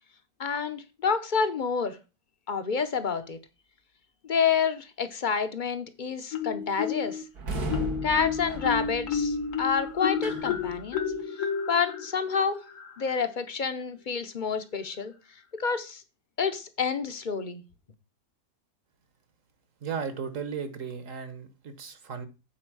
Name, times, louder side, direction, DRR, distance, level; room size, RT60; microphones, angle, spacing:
voice 1, 0.4-2.0 2.5-3.4 4.2-7.2 8.0-11.0 11.7-12.6 13.0-15.1 15.6-16.0 16.4-17.6, left 6 dB, 40° left, 0.8 m, -28 dB
Marimba xylophone, 6.3-7.2 7.7-13.2, left 7 dB, 60° left, 1.3 m, -31 dB
sound 1, 7.3-11.2, right 1 dB, 80° right, 2.2 m, -36 dB
voice 2, 19.8-22.3, right 6 dB, 60° right, 1.4 m, -35 dB
8.8 x 4.3 x 6.1 m
omnidirectional pair, 1.6 m